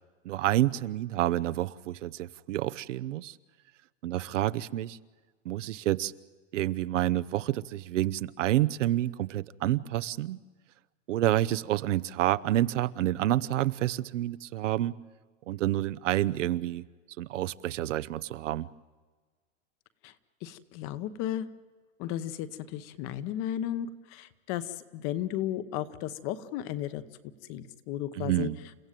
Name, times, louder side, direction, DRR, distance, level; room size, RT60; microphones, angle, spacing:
voice 1, 0.2-3.4 4.0-5.0 5.4-6.1 6.5-10.4 11.1-15.0 15.5-16.8 17.2-18.7 28.1-28.6, right 14 dB, 70° right, 14 dB, 0.9 m, -28 dB
voice 2, 20.4-21.5 22.0-27.0 27.5-28.5, left 11 dB, 35° left, 13 dB, 1.1 m, -34 dB
29.5 x 15.5 x 9.1 m, 1.4 s
supercardioid pair, 155°, 38 cm